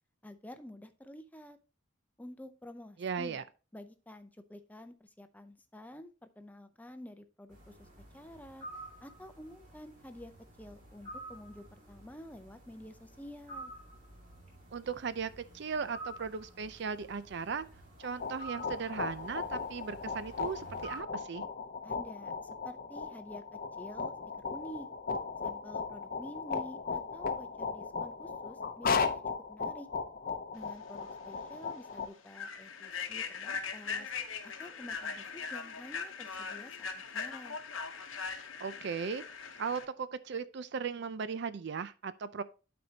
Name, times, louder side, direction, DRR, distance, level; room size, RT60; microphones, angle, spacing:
voice 1, 0.2-1.6 2.2-3.4 3.7-7.9 8.1-8.7 9.0-10.3 10.6-13.7 21.8-22.3 22.6-24.1 24.5-24.9 25.4-29.2 29.5-29.9 30.5-34.1 34.6-37.6, left 1 dB, 10° left, 0.5 m, -49 dB
voice 2, 3.0-3.4 14.7-17.7 18.0-21.4 38.6-42.4, right 5 dB, 60° right, 0.4 m, -37 dB
sound 1, 7.5-21.0, right 1 dB, 40° right, 2.3 m, -50 dB
sound 2, 18.0-32.1, left 5 dB, 45° left, 0.7 m, -37 dB
Human voice / Train, 31.0-31.1 31.6-31.7 32.3-39.8, left 5 dB, 80° left, 0.9 m, -40 dB
12.0 x 4.3 x 2.8 m
head